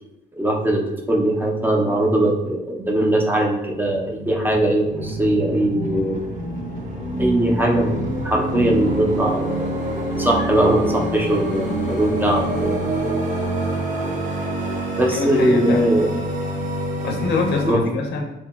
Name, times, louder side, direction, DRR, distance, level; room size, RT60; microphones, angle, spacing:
voice 1, 0.3-6.2 7.2-7.9 8.2-9.9 10.2-12.8 14.0-14.3 15.0-16.1 17.7-17.8, right 1 dB, 10° right, 0 dB, 0.4 m, -20 dB
sound 1, 3.7-17.7, right 1 dB, 40° right, 0.8 m, -26 dB
voice 2, 15.1-15.9 17.0-18.3, left 3 dB, 60° left, 3 dB, 0.5 m, -24 dB
2.9 x 2.7 x 2.3 m, 0.91 s
cardioid pair, 90°, 20 cm